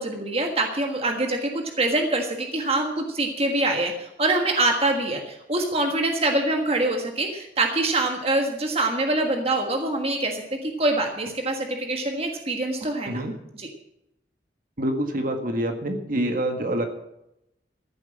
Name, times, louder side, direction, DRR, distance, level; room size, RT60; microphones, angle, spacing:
voice 1, 0.0-13.2 13.6-13.7, right 2 dB, 35° right, 3 dB, 1.5 m, -25 dB
voice 2, 14.8-16.8, right 1 dB, 50° right, 5 dB, 1.7 m, -26 dB
14.5 x 7.9 x 7.4 m, 0.84 s
head